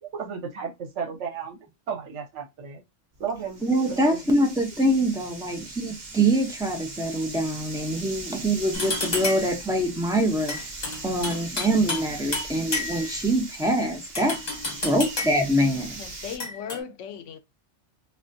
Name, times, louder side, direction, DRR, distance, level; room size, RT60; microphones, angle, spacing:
voice 1, 0.0-1.6 1.9-2.8 3.2-3.6 3.9-4.4, right 6 dB, 75° right, 1.1 m, -34 dB
sound 1, 3.1-16.4, right 3 dB, 40° right, 0.8 m, -40 dB
voice 2, 3.6-10.6 11.0-14.4 14.8-16.0, right 1 dB, 5° right, 0.5 m, -24 dB
sound 2, 8.7-9.6 10.5-12.1 12.3-13.2 14.1-15.5 16.4-16.8, left 2 dB, 40° left, 1.0 m, -30 dB
voice 3, 15.6-17.4, left 8 dB, 75° left, 0.9 m, -38 dB
3.4 x 2.4 x 2.7 m
omnidirectional pair, 1.3 m